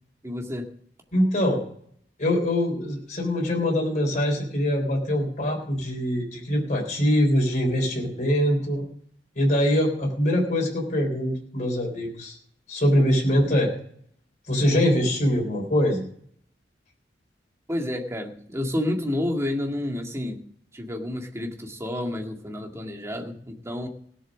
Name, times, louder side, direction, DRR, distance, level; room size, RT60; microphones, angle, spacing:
voice 1, 0.2-0.7 17.7-20.4 20.7-23.9, left 1 dB, 15° right, 2 dB, 2.1 m, -30 dB
voice 2, 1.1-1.6 2.2-8.9 9.4-12.4 12.7-13.7 14.5-16.0, equal, 45° left, 0 dB, 3.9 m, -23 dB
17.0 x 7.7 x 6.2 m, 0.62 s
head